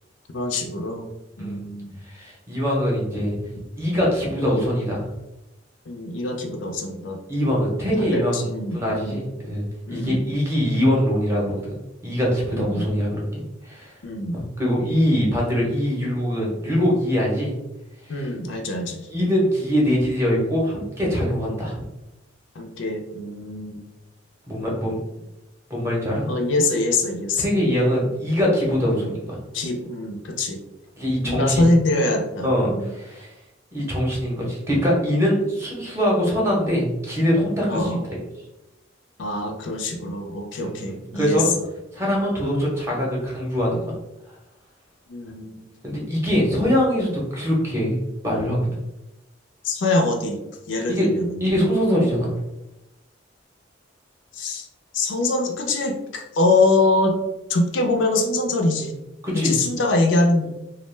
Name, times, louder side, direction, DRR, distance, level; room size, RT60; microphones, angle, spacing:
voice 1, 0.3-1.1 1.4-2.0 5.9-7.2 8.0-9.2 9.9-10.2 12.5-12.9 14.0-14.4 18.1-19.1 22.6-23.8 26.3-27.4 28.9-29.1 29.5-30.6 31.2-32.9 37.7-38.0 39.2-41.4 45.1-45.7 49.6-50.4 50.7-51.3 54.3-54.7 54.9-57.2 57.5-58.9 59.3-60.6, left 2 dB, 75° left, 3 dB, 0.4 m, -24 dB
voice 2, 2.1-3.4 3.8-5.0 7.3-11.6 12.0-13.9 14.3-17.6 18.1-18.3 19.1-21.8 24.5-25.0 25.7-26.3 27.4-29.4 31.0-31.6 32.4-33.3 33.7-38.2 40.6-41.5 41.9-43.9 45.8-48.0 48.2-48.6 50.9-51.1 51.4-52.3 59.2-59.6, equal, 15° right, -3 dB, 0.7 m, -23 dB
2.3 x 2.1 x 3.2 m, 0.93 s
head